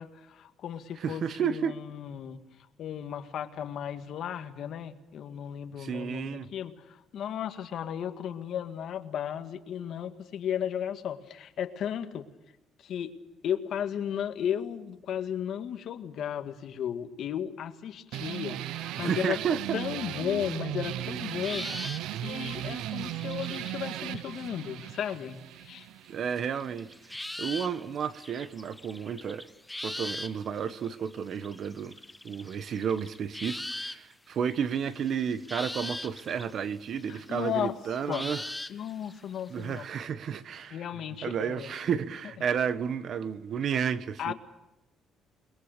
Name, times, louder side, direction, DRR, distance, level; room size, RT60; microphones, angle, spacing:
voice 1, 0.0-2.4 2.8-12.3 12.8-13.2 13.4-19.4 19.7-25.9 37.1-37.7 38.1-38.3 38.7-39.8 40.7-41.8 44.2-44.3, left 9 dB, 55° left, 1.9 m, -35 dB
voice 2, 1.0-1.8 5.8-6.5 19.0-19.8 26.1-26.9 27.4-29.5 29.8-32.0 32.2-38.4 39.5-40.8 41.2-44.3, right 7 dB, 45° right, 1.2 m, -32 dB
sound 1, 18.1-27.2, right 13 dB, 90° right, 0.8 m, -37 dB
sound 2, 21.0-25.3 26.0-34.1 34.5-37.4 38.0-39.8, left 1 dB, 5° left, 0.8 m, -41 dB
29.0 x 21.5 x 6.7 m
cardioid pair, 150°, 0 cm